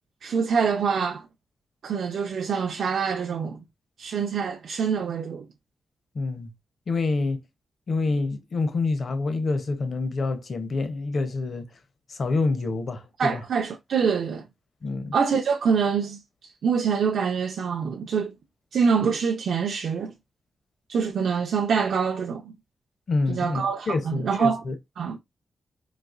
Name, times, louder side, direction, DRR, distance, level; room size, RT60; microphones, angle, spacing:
voice 1, 0.2-1.3 1.8-3.6 4.0-5.5 13.2-14.4 15.1-18.3 18.7-20.1 20.9-22.5 23.3-24.6 25.0-25.2, right 6 dB, 70° right, 0.4 m, -25 dB
voice 2, 6.1-6.5 6.9-7.4 7.9-11.7 12.1-13.4 14.8-15.1 23.1-24.7, left 3 dB, 45° left, 0.6 m, -27 dB
4.0 x 2.8 x 2.3 m
wide cardioid pair, 150°, 0 cm